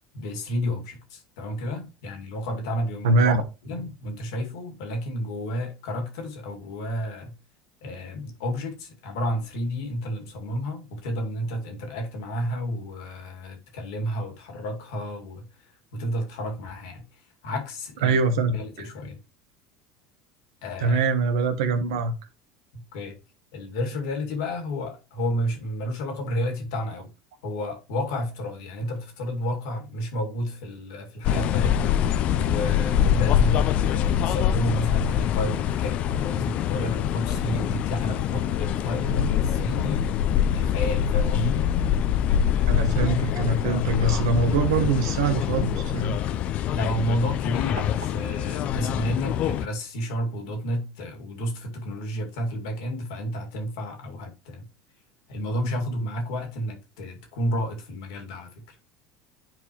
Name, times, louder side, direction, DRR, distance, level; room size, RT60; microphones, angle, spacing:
voice 1, 0.1-3.2 3.6-7.4 7.8-15.5 15.9-17.0 17.4-18.2 18.5-19.2 20.6-21.0 22.7-23.2 23.5-27.1 27.4-32.0 32.4-40.1 40.6-41.7 46.7-54.7 55.3-58.6, equal, 75° left, 2.0 m, -31 dB
voice 2, 3.0-3.4 18.0-18.8 20.8-22.1 42.7-46.2, right 3 dB, 80° right, 1.2 m, -23 dB
sound 1, 31.2-49.7, left 9 dB, 55° left, 0.5 m, -24 dB
9.5 x 4.6 x 3.0 m
hypercardioid pair, 90°, 3 cm